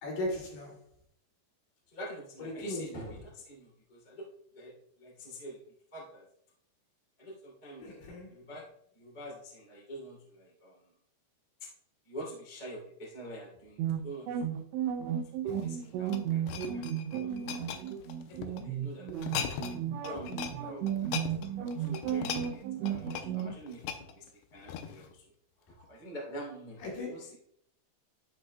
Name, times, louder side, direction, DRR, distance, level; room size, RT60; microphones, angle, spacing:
voice 1, 0.0-0.8 2.4-2.9 7.8-8.3 25.8-25.9 26.8-27.4, left 1 dB, 65° left, 3.9 m, -37 dB
voice 2, 1.9-4.2 4.5-4.7 5.0-5.6 5.9-6.2 7.2-7.9 8.3-8.6 8.9-10.8 11.6-11.7 12.1-14.3 15.4-17.5 18.3-19.4 20.0-24.2 24.5-25.2 25.9-27.3, right 1 dB, 20° left, 1.3 m, -46 dB
sound 1, 13.8-23.5, right 9 dB, 80° right, 2.9 m, -34 dB
sound 2, 15.4-18.6 19.1-19.8 20.0-20.6 20.9-25.1 25.7-25.9, left 8 dB, 85° left, 2.6 m, -39 dB
12.0 x 5.2 x 2.2 m
omnidirectional pair, 5.3 m